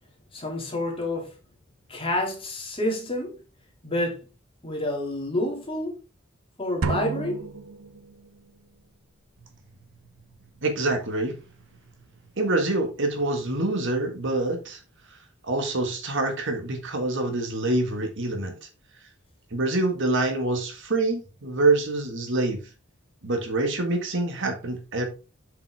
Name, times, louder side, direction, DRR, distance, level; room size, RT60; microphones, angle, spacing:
voice 1, 0.3-1.4 1.9-3.4 3.8-4.2 4.6-6.0 6.6-7.4, left 1 dB, 25° left, 2.5 m, -28 dB
sound 1, 6.8-8.5, right 4 dB, 90° right, 0.7 m, -31 dB
voice 2, 10.6-11.4 12.4-14.8 15.4-18.7 19.5-22.6 23.2-25.0, right 2 dB, 60° right, 1.7 m, -26 dB
7.6 x 5.8 x 3.5 m
head